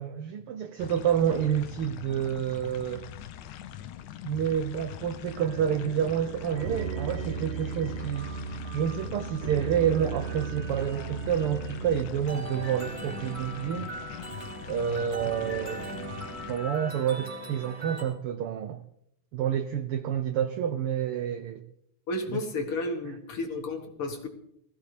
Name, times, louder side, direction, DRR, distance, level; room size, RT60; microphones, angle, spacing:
voice 1, 0.0-3.2 4.2-8.3 8.7-13.9 14.7-15.9 16.5-18.8 19.3-21.6 22.3-22.4 23.0-23.2, right 9 dB, 80° right, 1.2 m, -29 dB
sound 1, 0.8-16.6, left 11 dB, 85° left, 2.2 m, -43 dB
sound 2, 5.3-18.0, right 4 dB, 15° right, 3.6 m, -37 dB
voice 2, 22.1-24.3, left 2 dB, 50° left, 2.3 m, -32 dB
20.5 x 15.0 x 3.3 m
omnidirectional pair, 3.4 m